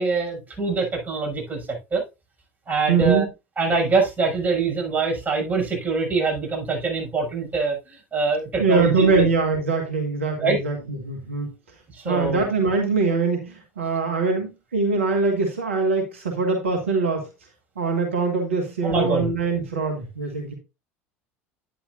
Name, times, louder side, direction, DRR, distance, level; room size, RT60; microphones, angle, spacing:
voice 1, 0.0-1.6 1.9-2.0 2.7-3.2 3.6-9.3 10.4-10.6 11.9-12.5 18.8-19.3, right 4 dB, 25° right, 0 dB, 6.8 m, -24 dB
voice 2, 2.9-3.3 8.6-11.5 12.0-17.3 17.8-20.5, right 4 dB, 80° right, 3 dB, 1.8 m, -23 dB
10.0 x 10.0 x 2.6 m, 0.26 s
hypercardioid pair, 70°, 7 cm